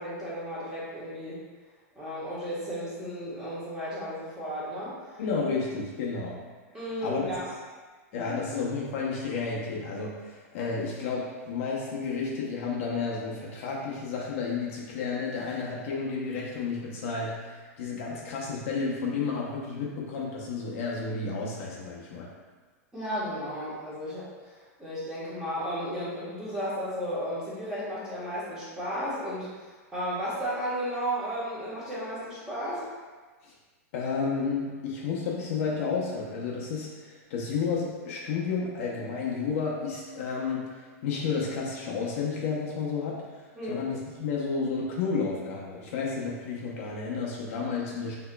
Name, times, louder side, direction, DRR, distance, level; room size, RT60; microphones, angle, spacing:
voice 1, 0.0-1.4 1.9-5.2 6.7-7.5 8.1-8.4 22.9-32.9 43.5-43.8, equal, 10° right, -10 dB, 1.2 m, -34 dB
voice 2, 5.2-6.4 7.0-7.4 8.1-22.3 33.4-33.5 33.9-48.1, left 5 dB, 60° left, -3 dB, 0.7 m, -31 dB
4.4 x 2.8 x 2.2 m, 1.4 s
supercardioid pair, 140°, 8 cm